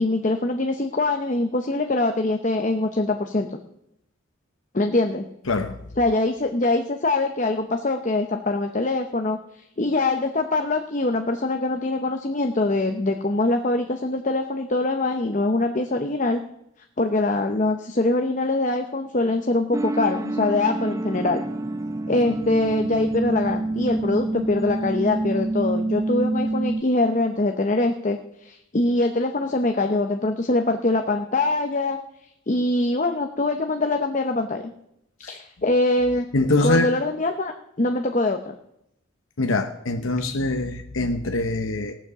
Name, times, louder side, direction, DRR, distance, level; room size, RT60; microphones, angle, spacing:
voice 1, 0.0-3.6 4.7-5.3 6.0-16.4 17.0-21.4 22.1-32.0 32.5-34.7 35.2-36.2 36.6-38.5, left 2 dB, 35° left, 5 dB, 0.8 m, -23 dB
voice 2, 5.5-5.8 35.2-35.4 36.3-36.9 39.4-42.0, left 2 dB, 80° left, 5 dB, 0.9 m, -23 dB
sound 1, 19.7-26.8, right 2 dB, 15° right, 0.4 m, -27 dB
18.0 x 7.3 x 6.8 m, 0.79 s
head